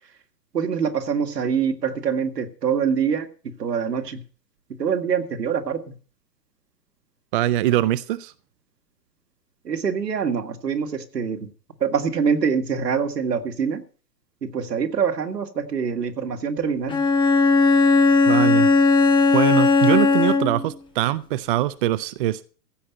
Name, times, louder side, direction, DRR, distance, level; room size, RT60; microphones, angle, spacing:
voice 1, 0.5-4.2 4.8-5.9 9.6-11.5 11.8-13.8 14.4-17.0, right 6 dB, 80° right, 2.0 m, -25 dB
voice 2, 7.3-8.3 18.3-18.7 19.3-22.4, right 14 dB, 35° right, 0.6 m, -23 dB
Bowed string instrument, 16.9-20.7, left 4 dB, 10° left, 0.8 m, -17 dB
15.5 x 5.5 x 8.6 m
hypercardioid pair, 115°, 48 cm